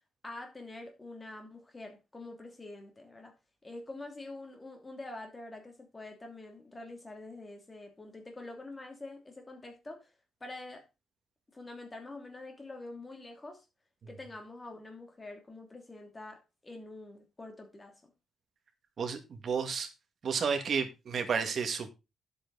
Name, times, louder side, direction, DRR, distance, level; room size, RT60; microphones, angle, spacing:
voice 1, 0.2-3.3 3.6-10.1 10.4-10.8 11.5-13.6 14.1-18.1, left 2 dB, 15° left, 2.7 m, -46 dB
voice 2, 19.0-19.9 20.2-21.9, right 6 dB, 45° right, 1.9 m, -31 dB
10.5 x 8.1 x 4.0 m
cardioid pair, 170°, 0 cm